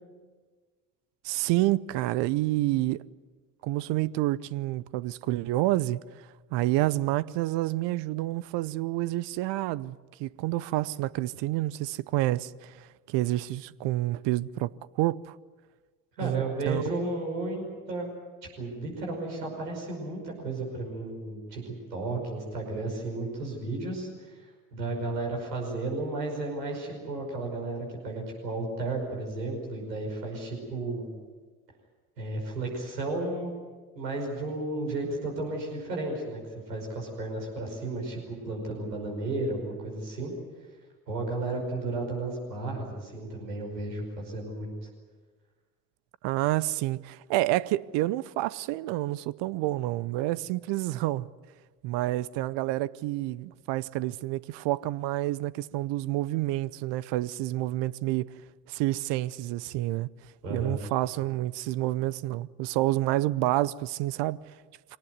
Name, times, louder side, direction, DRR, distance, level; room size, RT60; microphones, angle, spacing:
voice 1, 1.2-3.0 3.6-6.0 6.5-15.3 16.2-16.8 46.2-51.3 51.8-58.3 58.7-60.1 60.5-64.4, right 16 dB, 60° right, 0.8 m, -28 dB
voice 2, 16.2-18.1 18.6-31.2 32.2-33.5 34.0-36.4 36.7-40.3 41.1-44.7 60.4-60.8, right 2 dB, 85° right, 5.6 m, -33 dB
24.0 x 18.5 x 9.5 m
hypercardioid pair, 55°, 48 cm